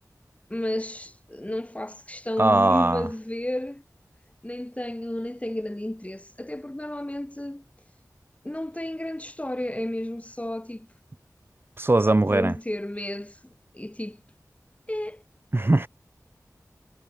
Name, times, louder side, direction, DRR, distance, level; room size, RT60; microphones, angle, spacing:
voice 1, 0.5-3.8 4.4-7.6 8.4-10.9 12.3-13.4 13.7-14.2 14.9-15.2, left 1 dB, 20° left, 4.6 m, -32 dB
voice 2, 2.4-3.1 11.8-12.5 15.5-15.9, right 2 dB, 35° right, 0.7 m, -20 dB
wide cardioid pair, 55°, 6 cm